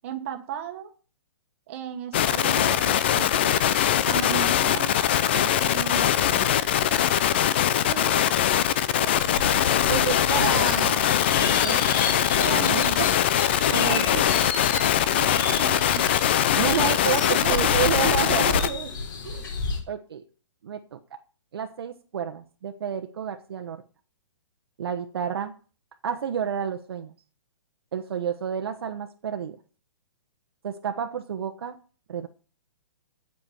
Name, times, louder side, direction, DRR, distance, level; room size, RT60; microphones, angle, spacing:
voice 1, 0.0-0.9 1.7-3.6 4.0-5.1 5.3-6.7 8.7-9.5 12.3-13.1 13.5-14.4 15.1-16.2 17.2-17.6 18.3-18.9, right 9 dB, 25° right, 1.5 m, -36 dB
sound 1, 2.1-18.7, left 10 dB, 20° left, 0.5 m, -22 dB
sound 2, 9.1-19.8, left 4 dB, 40° left, 4.5 m, -32 dB
voice 2, 9.9-11.1 11.4-11.9 12.5-13.1 13.7-14.2 16.5-18.5 19.3-19.5 19.9-20.2 20.6-21.0 21.5-23.8 24.8-25.5 26.0-27.1 27.9-29.6 30.6-31.8 32.1-32.3, right 8 dB, 50° right, 1.1 m, -30 dB
9.5 x 8.2 x 8.5 m
hypercardioid pair, 175°, 16 cm